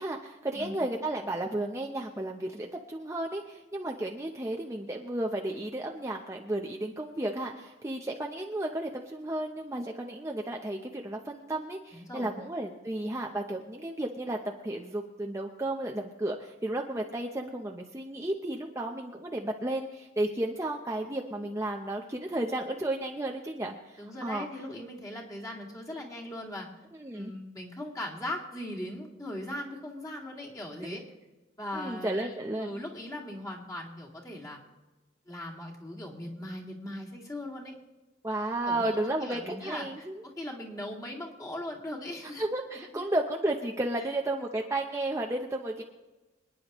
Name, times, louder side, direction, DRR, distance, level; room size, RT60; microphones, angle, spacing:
voice 1, 0.0-24.5 27.0-27.3 30.8-31.0 31.7-32.7 38.2-40.2 42.4-45.8, right 1 dB, 15° right, 1 dB, 0.7 m, -33 dB
voice 2, 11.9-12.4 24.0-26.7 27.1-31.0 31.6-34.6 35.3-37.7 38.6-40.1 40.4-42.4 42.9-43.1 44.0-44.1, left 1 dB, 20° left, -2 dB, 2.3 m, -39 dB
26.5 x 10.0 x 3.1 m, 1.2 s
head